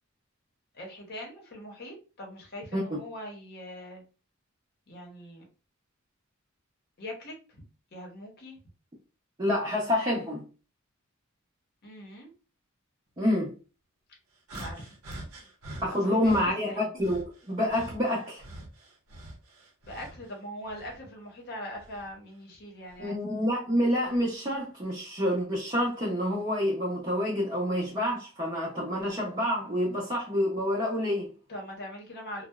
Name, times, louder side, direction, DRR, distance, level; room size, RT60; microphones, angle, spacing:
voice 1, 0.7-4.0 4.9-5.5 7.0-7.6 7.9-8.6 11.8-12.3 14.5-15.0 16.0-16.9 19.8-23.2 31.5-32.5, equal, 50° left, 0.7 m, -42 dB
voice 2, 9.4-10.4 13.2-13.5 14.5-14.7 15.8-18.4 23.0-31.3, left 1 dB, 25° right, 0.6 m, -28 dB
sound 1, 14.5-16.5 17.0-20.3 20.7-22.1 22.9-23.1 24.0-24.2, right 1 dB, 85° right, 0.6 m, -45 dB
2.7 x 2.0 x 2.3 m
head